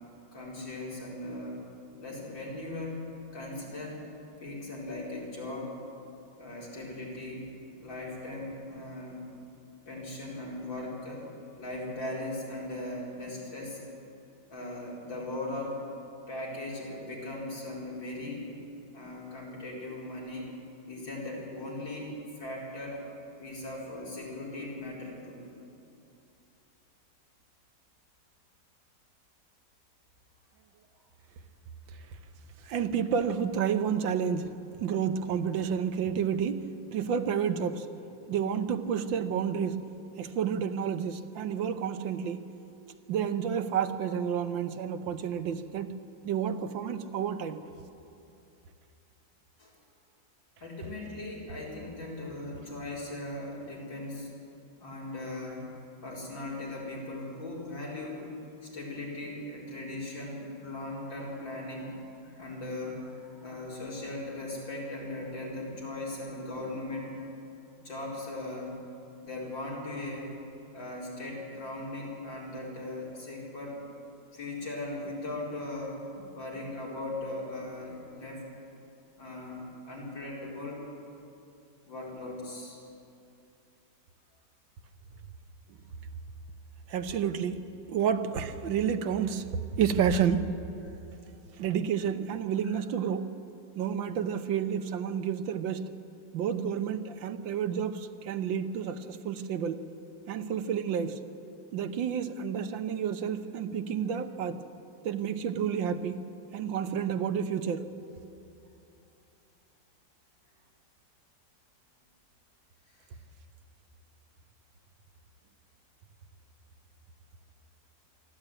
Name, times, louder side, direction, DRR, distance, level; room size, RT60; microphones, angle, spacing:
voice 1, 0.3-1.6 2.0-3.0 3.3-4.0 4.4-5.8 6.4-7.5 7.8-9.2 9.9-11.3 11.6-13.8 14.5-15.8 16.3-18.5 18.9-20.5 20.9-23.0 23.4-25.4 49.6-49.7 50.6-54.3 54.8-55.7 56.0-58.3 58.6-67.2 67.8-68.7 69.2-70.3 70.7-73.8 74.3-76.0 76.3-78.5 79.2-79.6 79.9-80.8 81.9-82.8 92.6-92.8 113.1-113.2, left 2 dB, 90° left, -5 dB, 5.4 m, -38 dB
voice 2, 32.6-37.9 38.3-39.9 40.2-42.5 43.1-46.0 46.2-47.6 86.9-90.5 91.5-93.3 93.7-95.9 96.3-99.9 100.3-101.2 101.7-104.6 105.0-106.3 106.5-107.9, right 7 dB, 85° right, 9 dB, 1.7 m, -30 dB
23.5 x 13.0 x 9.0 m, 2.7 s
omnidirectional pair, 2.0 m